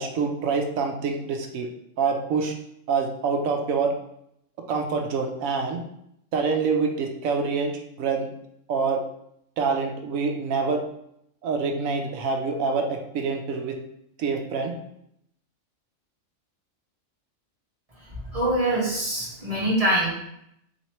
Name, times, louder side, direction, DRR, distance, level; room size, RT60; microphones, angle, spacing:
voice 1, 0.0-1.7 2.0-2.5 2.9-3.9 4.7-5.8 6.3-8.3 8.7-9.0 9.6-10.8 11.4-13.7 14.2-14.7, right 5 dB, 85° right, 3 dB, 1.1 m, -26 dB
voice 2, 18.3-20.1, right 1 dB, 30° right, -6 dB, 1.2 m, -24 dB
3.1 x 2.9 x 4.3 m, 0.75 s
omnidirectional pair, 1.4 m